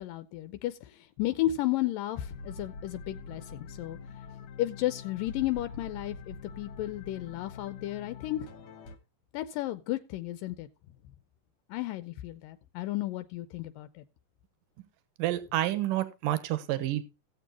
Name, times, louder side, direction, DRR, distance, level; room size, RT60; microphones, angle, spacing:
voice 1, 0.0-4.0 4.6-8.5 9.3-10.7 11.7-14.0, left 15 dB, 80° left, 2.4 m, -33 dB
sound 1, 2.1-9.0, left 4 dB, 60° left, 2.4 m, -45 dB
voice 2, 15.2-17.0, right 14 dB, 80° right, 2.7 m, -29 dB
17.0 x 7.7 x 2.9 m
omnidirectional pair, 3.9 m